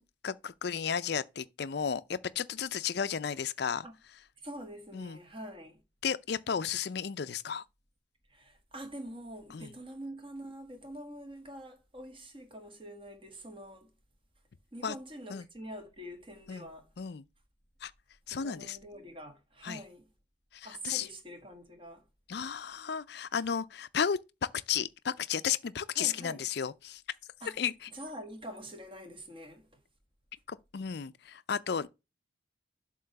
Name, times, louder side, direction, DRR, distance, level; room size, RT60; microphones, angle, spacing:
voice 1, 0.0-3.9 4.9-5.2 6.0-7.6 9.5-9.7 14.8-14.9 15.3-15.5 16.5-16.7 17.0-17.2 17.8-17.9 18.3-18.8 19.6-19.8 20.5-21.1 22.3-27.0 27.4-27.9 30.5-31.9, left 7 dB, 55° left, 0.4 m, -33 dB
voice 2, 4.4-5.8 8.3-13.9 14.7-16.9 18.3-20.1 20.6-22.0 25.9-26.4 27.4-27.6 27.9-29.7, equal, 25° right, 1.3 m, -45 dB
7.4 x 3.0 x 5.8 m
head